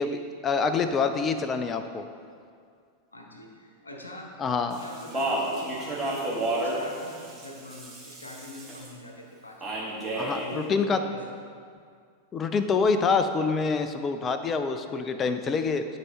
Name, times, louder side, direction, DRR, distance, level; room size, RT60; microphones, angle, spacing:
voice 1, 0.0-2.1 4.4-4.8 10.1-11.0 12.3-15.9, left 5 dB, 25° left, 9 dB, 0.5 m, -26 dB
voice 2, 3.1-4.3 4.6-5.3 5.5-11.3, left 1 dB, 80° left, 1 dB, 1.0 m, -44 dB
Speech, 4.7-8.9 9.6-10.5, right 1 dB, 15° right, 2.0 m, -31 dB
12.0 x 4.6 x 3.1 m, 2.2 s
figure-of-eight pair, 90°, 0 cm